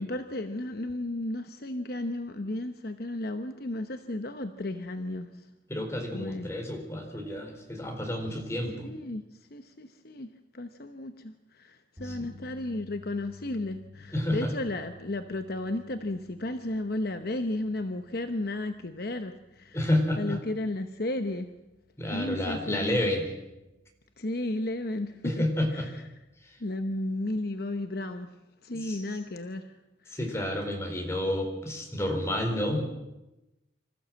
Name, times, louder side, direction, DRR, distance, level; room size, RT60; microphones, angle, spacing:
voice 1, 0.0-5.5 6.1-6.5 8.8-19.9 20.2-21.5 22.1-23.0 24.2-25.5 25.7-26.0 26.6-28.3 28.6-29.8 30.0-30.2, left 1 dB, 55° left, 8 dB, 1.0 m, -34 dB
voice 2, 5.7-8.9 12.0-12.1 14.1-14.5 19.7-20.4 22.0-23.3 25.2-25.9 26.4-26.6 28.8-29.0 30.1-32.8, left 1 dB, 15° left, 2 dB, 4.2 m, -30 dB
sound 1, 12.0-24.2 24.6-24.8 27.0-27.1, left 2 dB, ahead, 4.5 m, -53 dB
26.0 x 15.0 x 7.7 m, 0.99 s
head